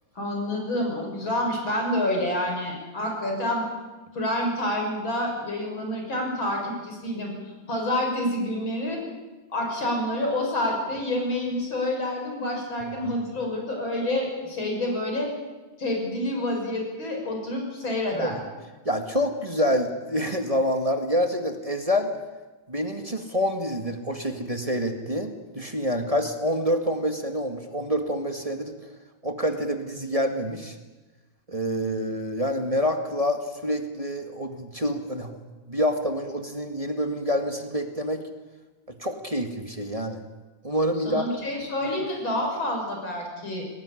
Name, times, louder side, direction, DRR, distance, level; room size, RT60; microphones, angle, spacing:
voice 1, 0.2-3.7 4.1-7.3 7.7-9.0 9.5-15.3 15.8-18.4 41.1-43.8, left 1 dB, 90° left, 1 dB, 7.0 m, -28 dB
voice 2, 18.9-22.1 22.7-28.8 29.2-30.8 31.5-38.2 39.0-40.2 40.6-41.2 41.9-42.0, equal, 20° right, 5 dB, 2.0 m, -27 dB
22.5 x 19.0 x 10.0 m, 1.2 s
omnidirectional pair, 2.1 m